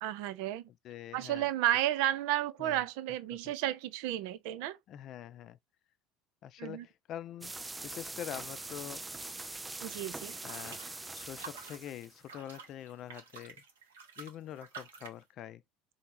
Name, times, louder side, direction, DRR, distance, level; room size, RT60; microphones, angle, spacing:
voice 1, 0.0-0.7 1.1-4.8 6.6-6.9 9.8-10.4, right 13 dB, 70° right, 0.5 m, -32 dB
voice 2, 0.8-1.5 2.6-2.8 3.4-3.5 4.9-5.6 6.4-7.5 7.8-9.0 10.4-10.8 11.1-13.6 14.2-15.6, left 11 dB, 50° left, 0.5 m, -44 dB
sound 1, 7.4-12.2, right 2 dB, 15° right, 0.4 m, -43 dB
sound 2, 10.2-15.2, right 5 dB, 85° right, 1.1 m, -50 dB
4.4 x 2.8 x 2.6 m
hypercardioid pair, 75°, 0 cm